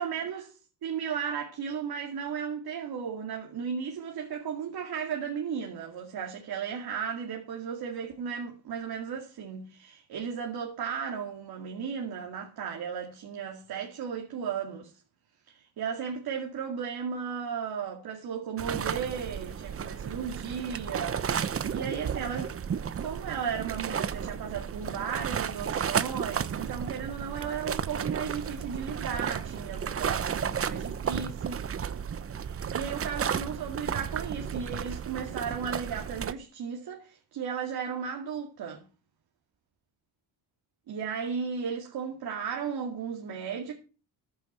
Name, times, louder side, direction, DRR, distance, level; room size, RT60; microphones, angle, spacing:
voice 1, 0.0-14.9 15.5-22.5 23.0-31.6 32.4-38.8 40.9-43.7, right 7 dB, 65° right, 2.3 m, -35 dB
sound 1, 18.6-36.3, right 7 dB, 35° right, 0.8 m, -33 dB
14.0 x 11.0 x 4.4 m
cardioid pair, 115°, 40 cm